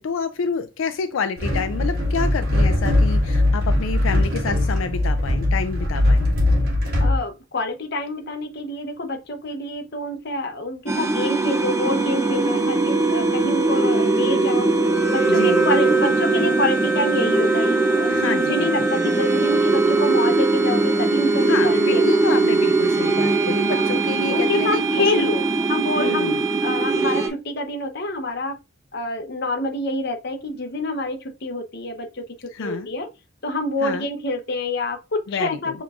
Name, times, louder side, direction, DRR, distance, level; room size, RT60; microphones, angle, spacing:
voice 1, 0.0-6.3 15.3-15.7 18.1-18.9 21.4-25.3 25.9-26.4 32.5-32.9 33.8-34.1 35.3-35.8, left 5 dB, 85° left, 0.4 m, -28 dB
sound 1, 1.4-7.2, left 1 dB, 50° right, 1.3 m, -20 dB
voice 2, 7.0-14.7 15.1-22.4 23.7-24.0 24.3-25.4 25.7-26.3 26.6-28.6 28.9-32.2 32.6-33.1 33.4-35.8, left 2 dB, 55° left, 0.8 m, -27 dB
sound 2, 10.9-27.3, right 3 dB, 15° right, 0.6 m, -20 dB
6.9 x 3.1 x 2.4 m
head